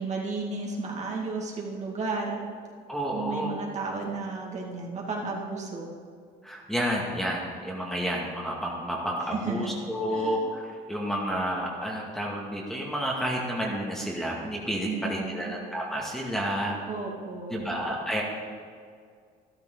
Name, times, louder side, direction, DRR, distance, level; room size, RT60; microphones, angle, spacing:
voice 1, 0.0-2.4 3.1-5.9 9.3-9.6 10.1-10.4 14.8-15.5 16.9-17.7, right 3 dB, 45° right, -2 dB, 2.4 m, -33 dB
voice 2, 2.9-3.5 6.4-16.8 17.5-18.2, equal, 5° left, -2 dB, 2.1 m, -30 dB
12.5 x 12.0 x 4.0 m, 2.1 s
cardioid pair, 110°, 17 cm